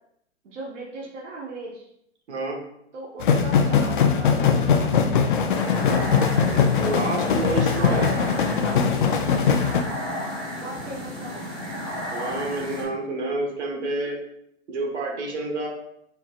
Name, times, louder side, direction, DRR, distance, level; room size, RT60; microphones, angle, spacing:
voice 1, 0.4-1.9 2.9-5.2 7.2-8.2 8.6-8.9 9.6-9.9 10.6-11.5, right 2 dB, 80° right, -4 dB, 1.1 m, -38 dB
sound 1, 3.2-9.8, left 6 dB, 45° left, 0.5 m, -21 dB
sound 2, 5.5-12.8, left 1 dB, 10° right, 0.9 m, -33 dB
voice 2, 6.8-8.1 12.1-14.2 14.7-15.7, right 2 dB, 65° right, -1 dB, 1.5 m, -28 dB
4.4 x 4.2 x 2.4 m, 0.75 s
hypercardioid pair, 155°, 36 cm